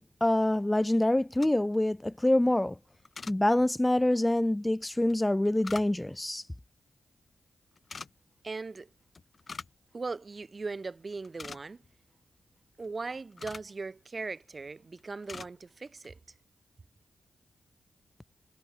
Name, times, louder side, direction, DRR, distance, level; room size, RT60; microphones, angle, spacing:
voice 1, 0.0-2.8 3.3-6.4, left 1 dB, 15° left, 0.9 m, -26 dB
sound 1, 1.2-1.8 3.0-3.4 5.1-6.2 7.8-8.1 9.1-9.8 10.1-10.2 10.7-10.9 11.1-11.9 12.8-13.7 14.5-14.7 15.0-15.5 15.9-16.1, left 4 dB, 50° left, 2.2 m, -44 dB
voice 2, 8.4-8.9 9.9-11.8 12.8-16.2, right 3 dB, 45° right, 3.0 m, -39 dB
cardioid pair, 55°, 0 cm